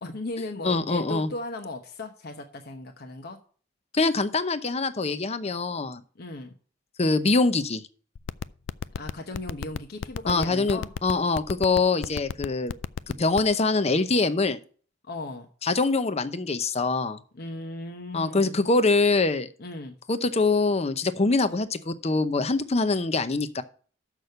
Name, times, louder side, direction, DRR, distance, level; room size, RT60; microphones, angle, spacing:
voice 1, 0.0-3.4 6.2-6.5 9.0-10.9 15.1-15.5 17.3-18.6 19.6-19.9, left 2 dB, 55° left, 4 dB, 0.9 m, -37 dB
voice 2, 0.6-1.3 3.9-6.0 7.0-7.8 10.3-12.7 13.2-14.6 15.6-17.2 18.1-19.5 20.1-23.6, left 3 dB, 35° left, 12 dB, 0.7 m, -24 dB
sound 1, 8.2-13.5, left 6 dB, 80° left, 0.4 m, -30 dB
6.6 x 6.1 x 6.7 m, 0.43 s
head